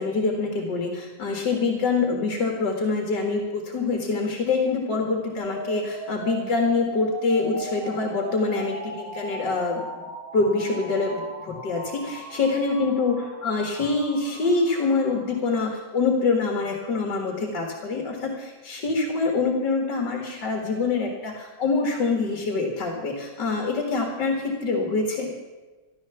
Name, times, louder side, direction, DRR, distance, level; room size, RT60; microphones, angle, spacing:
voice 1, 0.0-25.3, left 3 dB, 65° left, 3 dB, 2.4 m, -25 dB
sound 1, 5.4-15.4, right 2 dB, 60° right, 4.1 m, -38 dB
15.0 x 11.5 x 7.0 m, 1.2 s
omnidirectional pair, 2.0 m